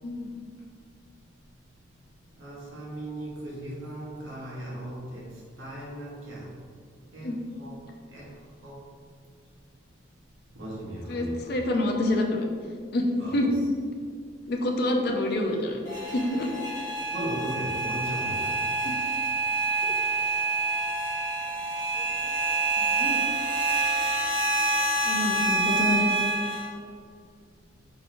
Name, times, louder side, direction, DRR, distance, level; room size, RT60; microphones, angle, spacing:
voice 1, 0.0-0.3 7.2-7.4 11.1-12.5 12.9-13.5 14.5-15.8 16.1-16.5 18.8-19.0 19.8-19.9 21.9-22.1 22.8-23.3 25.0-26.2, left 1 dB, 55° left, 2 dB, 0.5 m, -27 dB
voice 2, 2.3-5.3 5.6-6.5 7.1-7.7 8.1-8.3 8.6-8.8 10.5-11.7 13.2-13.7 16.0-16.2 17.1-18.5, right 1 dB, 80° right, -6 dB, 1.1 m, -37 dB
sound 1, 15.8-26.7, right 3 dB, 15° left, 1.2 m, -27 dB
4.9 x 3.0 x 2.5 m, 2.1 s
head